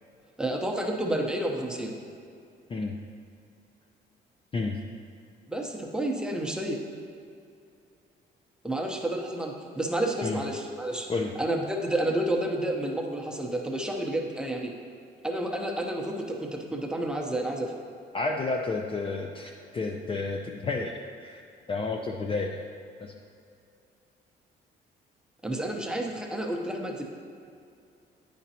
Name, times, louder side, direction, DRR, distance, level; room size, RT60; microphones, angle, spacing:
voice 1, 0.4-1.9 5.5-6.8 8.6-11.1 11.4-14.7 15.2-17.7 25.4-27.0, right 1 dB, 5° right, 0 dB, 0.8 m, -30 dB
voice 2, 18.1-21.4 21.7-22.6 23.0-23.1, left 3 dB, 25° left, 1 dB, 0.4 m, -31 dB
9.0 x 5.1 x 2.8 m, 2.5 s
cardioid pair, 90°, 20 cm